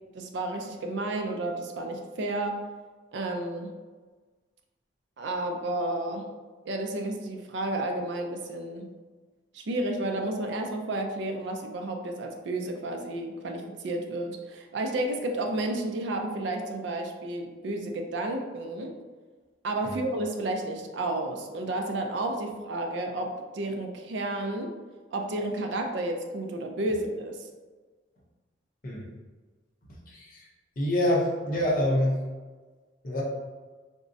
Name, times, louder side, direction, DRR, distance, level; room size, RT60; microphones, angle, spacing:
voice 1, 0.1-2.6 3.1-3.7 5.2-6.3 6.7-8.9 9.5-18.9 19.6-24.7 25.1-27.5, right 2 dB, 65° right, 3 dB, 0.4 m, -31 dB
voice 2, 29.9-30.5 30.8-32.2 33.0-33.2, left 1 dB, 45° left, -4 dB, 0.6 m, -26 dB
3.5 x 2.0 x 2.6 m, 1.4 s
head